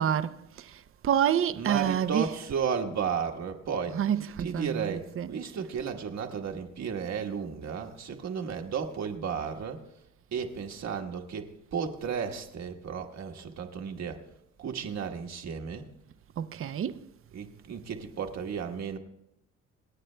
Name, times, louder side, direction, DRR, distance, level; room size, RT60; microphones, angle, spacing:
voice 1, 0.0-2.3 3.9-5.3 16.4-17.0, right 9 dB, 45° right, 0.6 m, -28 dB
voice 2, 1.5-4.1 4.4-9.9 10.3-14.2 14.6-15.9 17.3-19.0, right 6 dB, 60° right, 1.3 m, -34 dB
25.0 x 9.1 x 2.2 m
cardioid pair, 90°, 30 cm